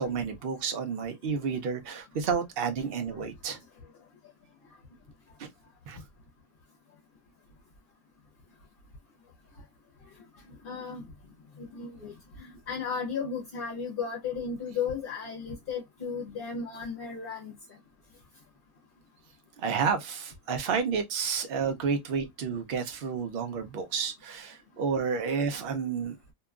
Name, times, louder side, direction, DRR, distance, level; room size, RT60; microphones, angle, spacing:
voice 1, 0.0-3.6 5.4-5.5 5.9-6.0 19.6-26.2, right 6 dB, 60° right, 0.6 m, -30 dB
voice 2, 10.6-11.1 11.6-17.5, left 6 dB, 45° left, 0.8 m, -35 dB
2.7 x 2.3 x 2.3 m
omnidirectional pair, 1.5 m